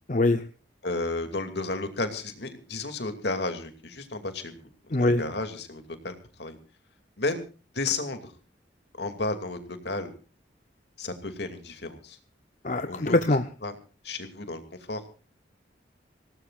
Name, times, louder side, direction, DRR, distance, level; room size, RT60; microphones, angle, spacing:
voice 1, 0.1-0.5 4.9-5.2 12.6-13.5, left 2 dB, 45° left, 8 dB, 0.8 m, -23 dB
voice 2, 0.8-4.7 5.0-6.1 6.4-6.6 7.2-7.4 7.7-8.2 9.0-9.6 9.8-10.1 11.0-12.2 12.8-13.2 13.6-13.7 14.0-14.6 14.9-15.0, left 3 dB, 65° left, 7 dB, 2.6 m, -32 dB
25.5 x 18.0 x 2.5 m, 0.35 s
head